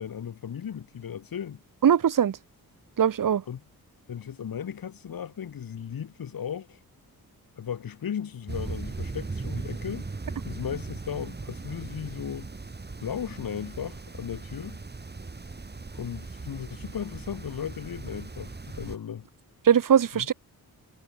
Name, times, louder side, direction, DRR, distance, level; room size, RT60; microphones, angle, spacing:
voice 1, 0.0-1.6 3.5-3.6 4.1-6.8 7.6-10.1 10.4-12.5 13.0-14.8 15.9-19.3 20.1-20.3, left 8 dB, 70° left, 2.3 m, -36 dB
voice 2, 1.8-2.4 3.0-3.4 19.6-20.3, right 8 dB, 60° right, 1.4 m, -20 dB
sound 1, 8.5-19.0, right 3 dB, 25° right, 4.9 m, -38 dB
wide cardioid pair, 115°, 37 cm